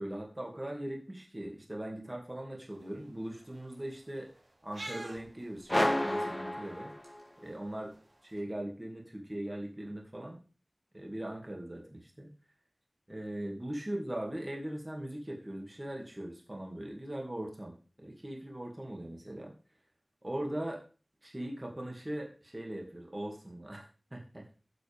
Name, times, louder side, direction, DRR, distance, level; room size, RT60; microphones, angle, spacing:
voice 1, 0.0-4.3 4.6-6.9 7.4-7.9 8.2-10.4 10.9-12.3 13.1-19.5 20.2-20.8 21.2-23.9 24.1-24.5, right 1 dB, 30° right, 0 dB, 2.4 m, -40 dB
sound 1, 2.7-8.4, right 1 dB, 90° right, 3.4 m, -51 dB
sound 2, 5.7-7.5, left 1 dB, 20° left, 0.7 m, -31 dB
15.0 x 7.6 x 3.6 m, 0.37 s
wide cardioid pair, 50°, 0 cm